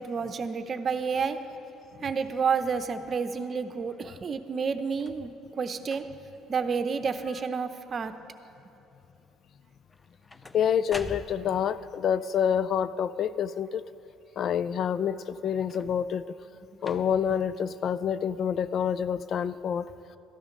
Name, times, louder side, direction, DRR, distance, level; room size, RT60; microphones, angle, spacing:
voice 1, 0.0-1.4 2.0-6.0 6.5-8.1, right 5 dB, 45° right, 9 dB, 0.8 m, -30 dB
sound 1, 4.9-5.3 5.8-6.4 7.0-7.4 7.6-8.2 9.9-11.7 15.6-16.2 16.8-17.4 18.2-18.3, left 2 dB, 20° left, 0.6 m, -45 dB
voice 2, 10.5-13.8 14.4-16.3 16.8-19.9, left 8 dB, 55° left, 16 dB, 0.3 m, -27 dB
13.0 x 11.0 x 5.2 m, 2.9 s
hypercardioid pair, 60°, 0 cm